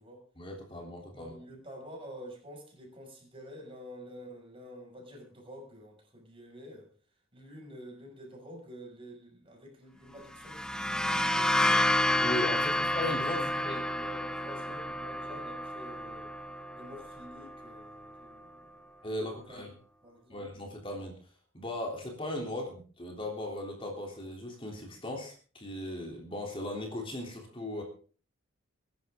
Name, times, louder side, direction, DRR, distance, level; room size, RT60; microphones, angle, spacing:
voice 1, 0.4-1.3 12.2-13.8 19.0-19.7 20.3-21.1 21.5-27.8, left 1 dB, 25° left, 0 dB, 3.4 m, -37 dB
voice 2, 1.1-6.9 7.3-11.9 13.3-16.3 16.7-18.8 19.1-19.7 20.0-20.4, equal, 25° right, 1 dB, 6.3 m, -49 dB
sound 1, 10.3-17.9, left 1 dB, 5° left, 0.6 m, -30 dB
22.5 x 11.5 x 3.8 m, 0.40 s
head